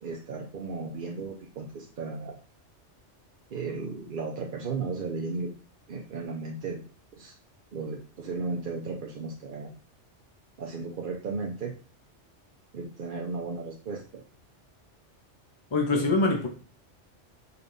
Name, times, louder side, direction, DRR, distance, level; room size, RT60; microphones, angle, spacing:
voice 1, 0.0-2.4 3.5-5.5 5.9-6.8 7.1-7.3 7.7-9.7 10.6-11.7 12.7-14.2 15.9-16.2, right 4 dB, 50° right, 0.8 m, -35 dB
voice 2, 15.7-16.5, left 3 dB, 30° left, 0.6 m, -24 dB
5.5 x 3.4 x 2.6 m
omnidirectional pair, 1.2 m